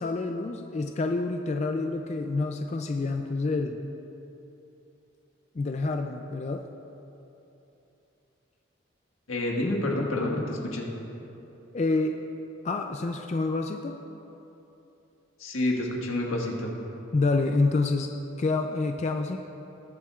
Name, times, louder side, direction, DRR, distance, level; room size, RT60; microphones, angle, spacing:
voice 1, 0.0-3.8 5.5-6.6 11.7-12.1 12.6-13.9 17.1-18.1 18.4-19.4, left 3 dB, 35° left, 4 dB, 0.3 m, -27 dB
voice 2, 9.3-10.9 15.4-16.7, left 1 dB, 85° left, -1 dB, 1.6 m, -28 dB
20.0 x 7.3 x 2.4 m, 3.0 s
head